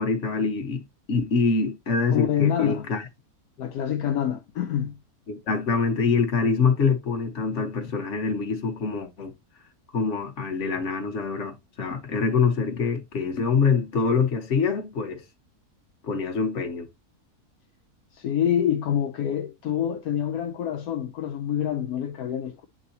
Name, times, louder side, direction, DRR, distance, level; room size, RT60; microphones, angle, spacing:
voice 1, 0.0-3.0 5.3-9.3 9.9-15.3 16.0-16.9, left 5 dB, 50° left, 1.5 m, -25 dB
voice 2, 2.1-2.9 3.6-5.0 18.1-22.7, left 9 dB, 75° left, 1.1 m, -26 dB
8.8 x 4.0 x 2.9 m
omnidirectional pair, 1.7 m